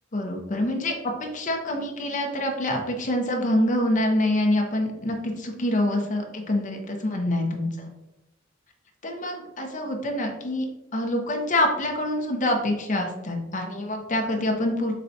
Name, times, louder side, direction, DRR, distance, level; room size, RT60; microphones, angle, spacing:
voice 1, 0.1-0.9 1.2-7.6 9.0-10.7 10.9-14.9, left 1 dB, 40° left, 3 dB, 0.7 m, -26 dB
6.6 x 2.2 x 2.7 m, 1.0 s
head